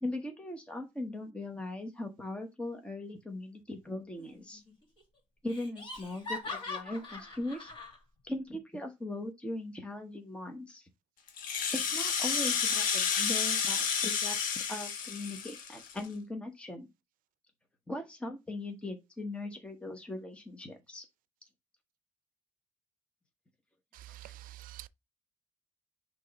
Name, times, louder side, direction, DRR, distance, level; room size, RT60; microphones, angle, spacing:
voice 1, 0.0-4.6 5.4-7.7 8.2-10.9 11.7-16.9 17.9-21.0 24.2-24.4, left 2 dB, 10° left, 1.0 m, -39 dB
Laughter, 4.2-4.7 5.0-5.1 5.5-8.0, left 3 dB, 35° left, 2.3 m, -42 dB
Rattle (instrument), 11.3-16.1, left 6 dB, 90° left, 1.2 m, -31 dB
voice 2, 23.9-24.9, right 15 dB, 90° right, 0.5 m, -47 dB
6.4 x 2.9 x 5.2 m
cardioid pair, 155°, 14 cm